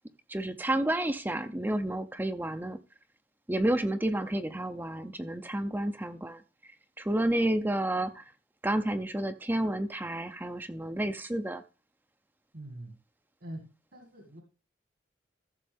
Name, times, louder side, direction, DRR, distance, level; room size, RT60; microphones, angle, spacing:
voice 1, 0.3-2.8 3.5-6.4 7.0-8.3 8.6-11.6, right 1 dB, 10° right, 0.5 m, -30 dB
voice 2, 12.5-13.0 13.4-13.7 13.9-14.4, right 1 dB, 70° right, 2.0 m, -43 dB
14.5 x 6.4 x 3.5 m
head